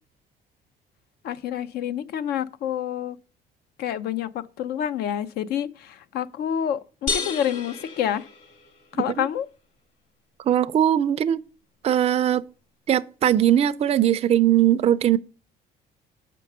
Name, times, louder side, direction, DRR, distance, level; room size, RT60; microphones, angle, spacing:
voice 1, 1.2-3.2 3.8-8.3 8.9-9.5, left 9 dB, 70° left, 0.6 m, -28 dB
sound 1, 7.1-8.9, left 4 dB, 45° left, 1.6 m, -31 dB
voice 2, 10.5-11.4 11.8-12.4 12.9-15.2, right 11 dB, 40° right, 0.4 m, -20 dB
6.6 x 5.3 x 6.5 m
cardioid pair, 110°, 17 cm